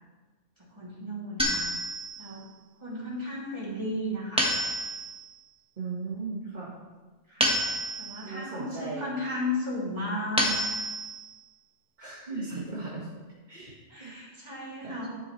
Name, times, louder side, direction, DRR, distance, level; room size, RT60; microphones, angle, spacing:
voice 1, 0.6-1.6 2.2-2.5 2.8-4.5 7.3-7.6 8.0-10.5 13.9-15.2, left 1 dB, 20° right, -7 dB, 2.9 m, -34 dB
sound 1, 1.4-2.3 4.4-5.2 7.4-8.3 10.4-11.3, equal, 5° right, 1.2 m, -28 dB
voice 2, 5.8-6.7 8.2-9.1 12.0-13.1 13.5-14.2 14.6-14.9, right 3 dB, 40° right, -5 dB, 1.6 m, -37 dB
11.5 x 7.0 x 3.2 m, 1.3 s
omnidirectional pair, 1.3 m